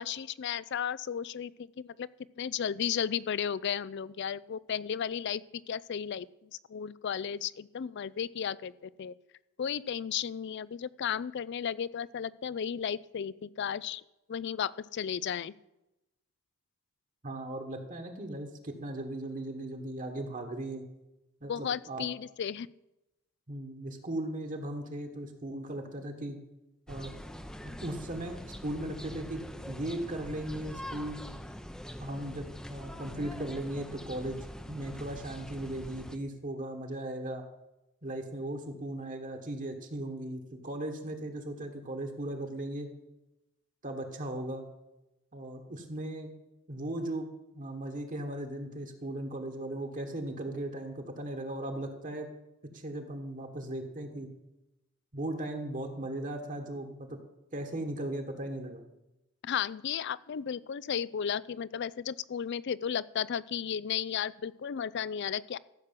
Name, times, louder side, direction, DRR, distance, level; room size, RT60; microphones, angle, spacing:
voice 1, 0.0-2.1 2.4-9.1 9.6-14.0 14.3-15.5 21.4-22.7 59.4-65.6, left 8 dB, 55° left, 20 dB, 0.4 m, -34 dB
voice 2, 17.2-20.8 21.4-22.1 23.5-26.4 26.9-27.1 27.6-31.2 32.0-34.4 34.7-37.4 38.0-42.9 43.8-44.7 45.3-46.3 46.7-47.3 47.5-52.3 52.7-54.3 55.1-57.2 57.5-58.8, right 1 dB, 40° right, 5 dB, 1.4 m, -37 dB
sound 1, 26.9-36.2, equal, 5° left, 0.6 m, -44 dB
14.5 x 6.2 x 7.5 m, 0.95 s
head